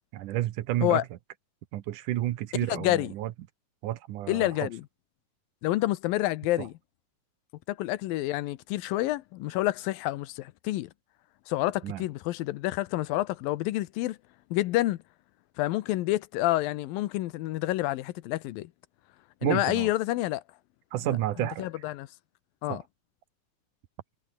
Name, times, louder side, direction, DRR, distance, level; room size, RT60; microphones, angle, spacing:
voice 1, 0.1-1.0 1.7-3.3 3.8-4.7 6.6-6.7 11.8-12.0 19.4-19.9 20.9-21.7 22.7-22.8, right 14 dB, 75° right, 2.3 m, -30 dB
voice 2, 2.7-3.1 4.3-4.9 5.6-6.7 7.7-10.9 11.5-14.2 14.5-15.0 15.6-18.7 19.4-20.4 21.1-22.1 22.6-22.8, left 16 dB, 85° left, 2.6 m, -28 dB
omnidirectional pair, 4.0 m